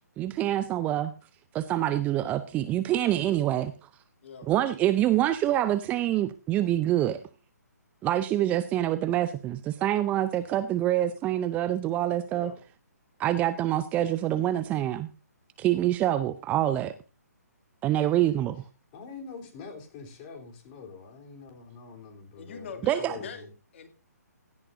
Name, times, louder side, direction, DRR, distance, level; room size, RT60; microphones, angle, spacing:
voice 1, 0.2-1.1 1.5-3.7 4.5-7.2 8.0-12.5 13.2-15.1 15.6-16.9 17.8-18.6 22.8-23.2, right 12 dB, 15° right, 0.5 m, -26 dB
voice 2, 12.3-12.6 22.4-23.9, left 6 dB, 45° left, 2.6 m, -43 dB
voice 3, 18.9-23.5, left 4 dB, 30° left, 3.3 m, -45 dB
17.0 x 11.5 x 2.6 m
figure-of-eight pair, 135°, 9 cm